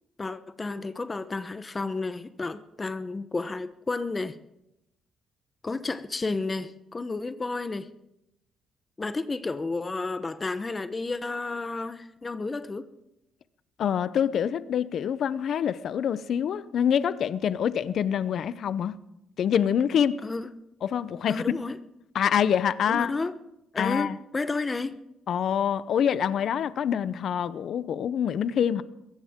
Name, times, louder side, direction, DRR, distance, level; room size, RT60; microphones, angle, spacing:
voice 1, 0.2-4.4 5.6-7.9 9.0-12.9 20.2-20.5 21.3-21.8 22.9-23.4 23.7-25.0, left 3 dB, 25° left, 11 dB, 0.9 m, -31 dB
voice 2, 13.8-18.9 19.4-20.2 20.8-21.4 22.1-23.1 23.8-24.2 25.3-28.8, left 8 dB, 65° left, 15 dB, 0.7 m, -26 dB
21.5 x 17.5 x 3.7 m, 0.86 s
cardioid pair, 90°, 0 cm